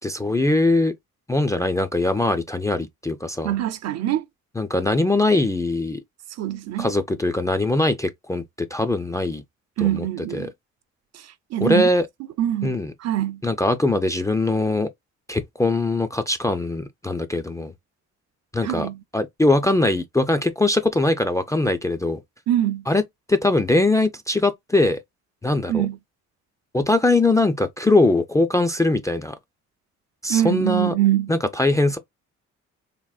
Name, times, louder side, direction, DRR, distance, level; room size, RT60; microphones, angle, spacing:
voice 1, 0.0-0.9 1.3-3.5 4.6-6.0 6.8-8.4 8.7-9.4 9.8-10.1 10.3-10.5 11.6-12.1 12.6-12.9 13.4-14.9 15.3-17.7 18.5-22.2 22.9-23.0 23.3-25.0 25.4-25.9 26.7-29.3 30.2-30.9 31.3-32.0, left 2 dB, 10° left, 0.3 m, -21 dB
voice 2, 3.4-4.2 6.4-6.9 9.8-10.5 11.1-11.2 11.5-11.9 12.4-13.4 18.6-19.0 22.5-22.8 25.7-26.0 30.3-31.3, right 12 dB, 60° right, 0.5 m, -23 dB
3.5 x 2.1 x 2.3 m
cardioid pair, 90°, 30 cm